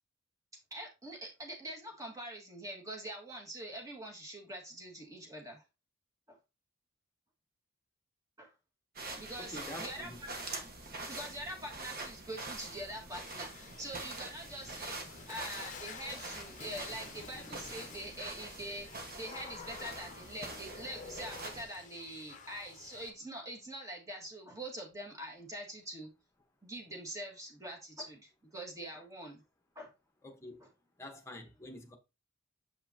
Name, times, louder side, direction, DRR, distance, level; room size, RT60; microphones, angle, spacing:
voice 1, 0.7-5.6 6.3-6.4 8.4-8.5 9.2-10.1 11.1-15.0 15.3-26.1 26.6-29.4 29.8-29.9 30.6-30.7, right 1 dB, 15° right, 1.9 m, -44 dB
sound 1, 9.0-21.6, right 2 dB, 45° right, 1.5 m, -45 dB
voice 2, 9.4-10.2 30.2-30.7 31.0-32.0, left 1 dB, 15° left, 1.2 m, -47 dB
Water / Splash splatter, 13.1-23.1, left 5 dB, 40° left, 0.8 m, -50 dB
7.3 x 5.5 x 2.8 m
head